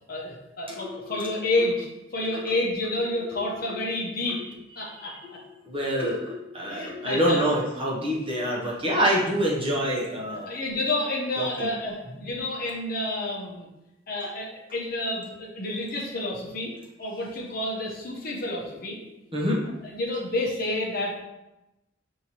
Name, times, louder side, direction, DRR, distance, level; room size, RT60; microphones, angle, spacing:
voice 1, 0.1-1.9 2.1-4.4 4.8-5.4 6.7-7.4 8.8-9.0 10.5-13.7 14.1-16.7 17.0-19.0 19.8-21.2, left 1 dB, 45° left, -2 dB, 0.8 m, -29 dB
voice 2, 0.7-1.3 2.3-2.4 3.3-3.8 4.3-4.4 5.7-10.5 11.4-11.7 19.3-19.6, equal, 25° right, -4 dB, 0.8 m, -27 dB
6.4 x 2.7 x 2.9 m, 0.96 s
head